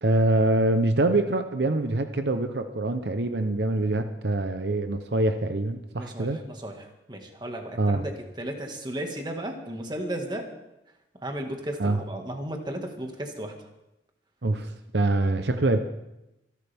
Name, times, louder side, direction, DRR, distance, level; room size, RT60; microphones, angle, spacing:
voice 1, 0.0-6.4 7.8-8.0 11.8-12.0 14.4-15.8, right 2 dB, 70° right, 8 dB, 0.8 m, -24 dB
voice 2, 5.9-10.5 11.2-13.7, right 1 dB, 25° right, 3 dB, 1.8 m, -35 dB
26.5 x 11.5 x 3.5 m, 0.92 s
head